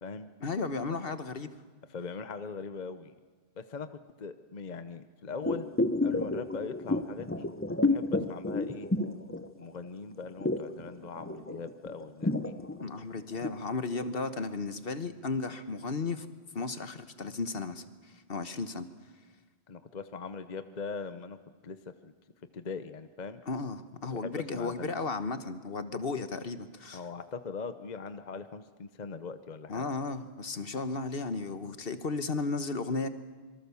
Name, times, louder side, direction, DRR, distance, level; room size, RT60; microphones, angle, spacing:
voice 1, 0.4-1.6 12.8-16.3 16.5-17.8 18.3-18.9 23.5-27.0 29.7-33.1, left 3 dB, 60° left, 10 dB, 1.4 m, -34 dB
voice 2, 1.9-3.1 3.6-3.9 4.2-5.7 6.0-7.5 7.8-8.9 9.6-12.6 19.7-21.4 21.6-21.8 22.0-22.1 22.5-23.4 24.1-25.0 26.9-29.8, left 5 dB, 45° left, 10 dB, 1.0 m, -41 dB
sound 1, 5.4-9.9 10.1-13.6 14.0-14.1, left 2 dB, 15° left, 0.9 m, -30 dB
26.5 x 24.0 x 7.1 m, 1.4 s
omnidirectional pair, 1.1 m